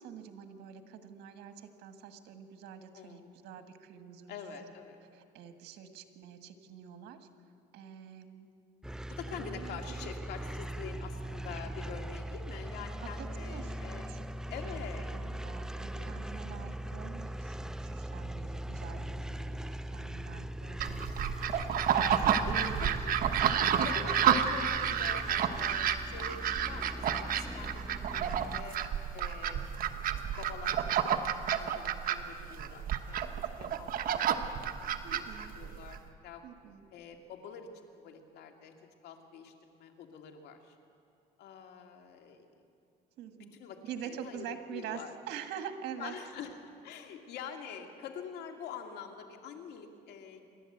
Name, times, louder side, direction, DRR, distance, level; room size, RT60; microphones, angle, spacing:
voice 1, 0.0-4.4 5.1-7.3 7.7-8.5 9.3-10.1 13.0-14.3 14.6-14.8 15.1-21.3 22.2-23.1 35.0-35.5 36.4-36.9 43.2-43.6 43.8-46.2, right 8 dB, 80° right, 7 dB, 1.6 m, -46 dB
voice 2, 2.9-3.3 4.3-5.0 9.2-14.0 14.5-15.1 15.9-16.3 16.8-17.0 18.5-18.6 22.5-23.1 23.8-28.8 29.1-29.6 30.4-31.3 31.6-33.3 33.6-34.6 34.8-35.2 35.5-36.4 36.9-38.7 39.0-40.8 41.4-42.5 43.3-45.1 46.0-46.6 46.8-50.5, left 7 dB, 80° left, 4 dB, 2.2 m, -46 dB
sound 1, 8.8-28.6, right 1 dB, 5° right, 0.4 m, -40 dB
Bass guitar, 12.6-18.9, left 4 dB, 55° left, 7.1 m, -56 dB
sound 2, 20.8-36.0, right 8 dB, 55° right, 1.2 m, -30 dB
27.5 x 12.0 x 7.9 m, 2.5 s
cardioid pair, 110°, 17 cm